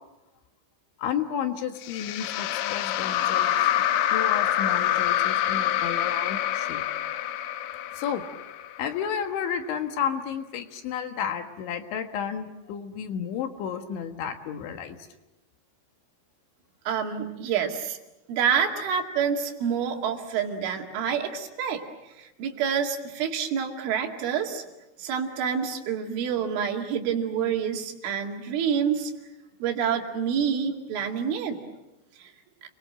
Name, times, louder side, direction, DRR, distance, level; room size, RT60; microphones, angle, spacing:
voice 1, 1.0-3.7 4.1-6.8 8.0-8.2 8.8-15.0, left 8 dB, 70° left, 6 dB, 3.7 m, -32 dB
sound 1, 1.8-9.1, left 12 dB, 90° left, 3.8 m, -26 dB
voice 2, 16.9-18.0 18.3-24.6 25.0-29.1 29.6-31.6 32.2-32.3, right 7 dB, 75° right, 2 dB, 4.7 m, -27 dB
30.0 x 23.0 x 7.7 m, 1.0 s
omnidirectional pair, 5.8 m